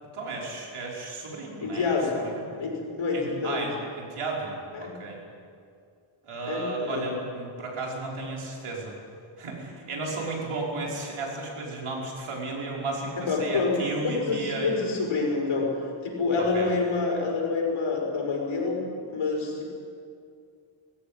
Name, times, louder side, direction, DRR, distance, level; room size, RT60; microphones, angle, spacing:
voice 1, 0.1-2.5 3.1-5.2 6.2-8.9 9.4-14.9 16.4-16.7, right 2 dB, 80° right, -2 dB, 5.4 m, -34 dB
voice 2, 1.6-2.2 2.6-3.7 4.7-5.0 6.5-7.1 13.2-15.8 16.0-19.7, left 4 dB, 75° left, -1 dB, 6.2 m, -27 dB
21.5 x 15.5 x 9.0 m, 2.3 s
wide cardioid pair, 95°, 49 cm